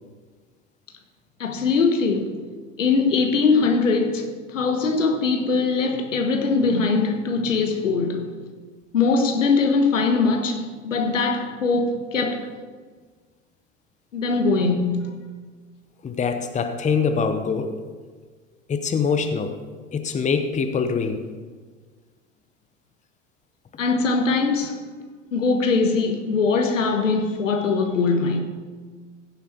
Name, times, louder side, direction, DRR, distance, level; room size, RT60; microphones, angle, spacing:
voice 1, 1.4-2.4 2.8-8.3 8.9-12.5 14.1-15.1 23.8-24.8 25.3-28.4, left 4 dB, 80° left, 1.4 m, -21 dB
voice 2, 16.0-17.8 18.7-19.6 19.9-21.2, left 5 dB, 20° left, 0.9 m, -24 dB
15.5 x 7.2 x 4.4 m
figure-of-eight pair, 80°, 37 cm